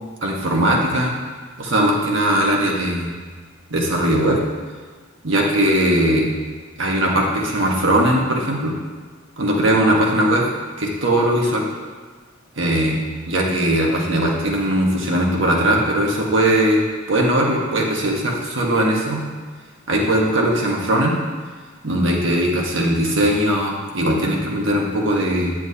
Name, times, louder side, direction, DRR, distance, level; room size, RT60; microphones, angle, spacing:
voice 1, 0.2-1.2 1.6-3.1 3.7-4.4 5.2-6.3 6.8-8.7 9.4-10.5 10.8-11.6 12.6-19.2 19.9-21.2 21.8-25.5, right 1 dB, 70° right, -1 dB, 1.3 m, -19 dB
9.6 x 7.2 x 2.8 m, 1.5 s
head